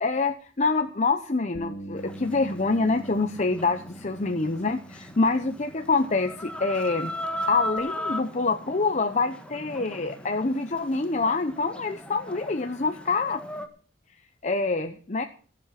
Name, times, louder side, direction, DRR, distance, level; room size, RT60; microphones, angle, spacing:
voice 1, 0.0-7.1 7.5-13.4 14.4-15.2, left 3 dB, 35° left, 7 dB, 0.8 m, -26 dB
Bass guitar, 1.5-7.8, right 2 dB, 70° left, 2.5 m, -44 dB
Chicken rooster, 2.0-13.7, equal, 5° left, 1.5 m, -38 dB
18.0 x 7.7 x 5.9 m, 0.41 s
head